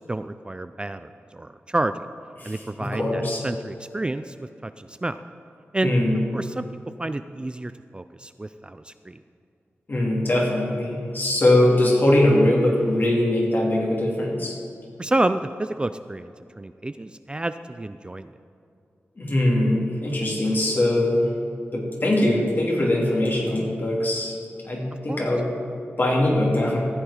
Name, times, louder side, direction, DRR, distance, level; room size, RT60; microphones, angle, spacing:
voice 1, 0.1-1.9 2.4-4.4 4.6-5.2 5.7-5.9 6.3-6.7 7.0-9.2 15.0-18.3 25.1-25.3, right 2 dB, 20° right, 11 dB, 0.3 m, -29 dB
voice 2, 2.4-3.4 5.8-6.2 9.9-14.6 19.2-21.3 21.7-24.3 24.6-25.5 26.0-26.8, left 1 dB, 45° left, -2 dB, 2.5 m, -21 dB
14.5 x 8.0 x 4.9 m, 2.6 s
wide cardioid pair, 80°, 4 cm